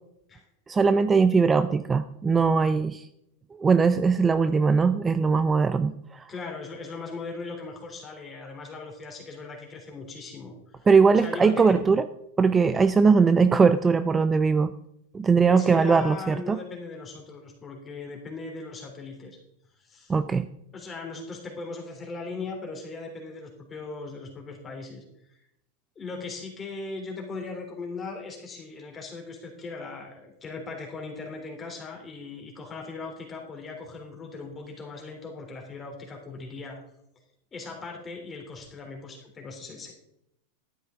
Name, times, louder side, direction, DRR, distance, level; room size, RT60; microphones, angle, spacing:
voice 1, 0.7-3.0 3.6-6.2 10.9-12.0 12.4-14.7 15.1-16.6 20.1-20.5, right 5 dB, 20° right, 12 dB, 0.5 m, -20 dB
voice 2, 6.3-10.9 11.1-11.8 15.4-19.4 19.8-20.1 20.7-25.4 26.0-36.8 37.5-39.9, left 3 dB, 25° left, 0 dB, 3.5 m, -39 dB
12.0 x 9.3 x 3.8 m, 0.79 s
hypercardioid pair, 105°, 0 cm